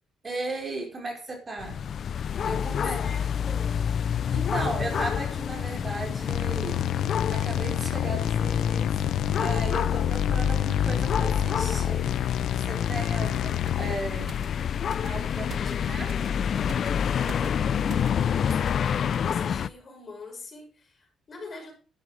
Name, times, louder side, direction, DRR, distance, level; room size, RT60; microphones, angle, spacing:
voice 1, 0.2-1.8 2.4-3.1 4.3-6.8 7.3-8.9 9.4-12.4 12.6-14.4 15.0-16.2, right 2 dB, 30° right, 5.1 m, -36 dB
sound 1, 1.6-19.7, left 8 dB, 55° left, 0.6 m, -28 dB
voice 2, 2.5-3.9 17.3-21.8, left 3 dB, 40° left, 6.2 m, -44 dB
sound 2, 6.3-14.0, left 11 dB, 80° left, 0.9 m, -28 dB
sound 3, 13.7-18.8 19.1-19.3, right 6 dB, 55° right, 1.4 m, -46 dB
11.5 x 10.5 x 5.0 m
cardioid pair, 90°, 0 cm